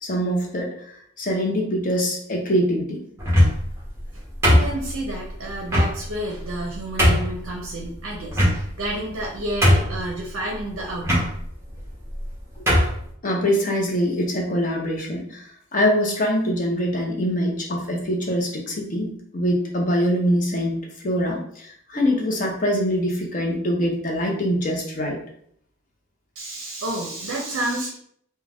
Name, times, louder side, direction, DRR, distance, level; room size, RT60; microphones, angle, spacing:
voice 1, 0.0-0.9 1.2-3.0 13.2-15.4 15.7-19.1 19.3-25.2, equal, 40° left, 0 dB, 0.6 m, -23 dB
sound 1, 3.2-3.7 4.4-5.1 5.7-5.9 6.5-6.6 7.0-7.3 8.3-8.9 9.2-9.3 9.6-10.1 11.0-11.3 12.1-12.3 12.7-13.0, equal, 10° right, 0.8 m, -17 dB
voice 2, 4.1-11.3 26.4-27.9, right 1 dB, 75° right, -1 dB, 0.5 m, -30 dB
2.4 x 2.2 x 3.3 m, 0.66 s
head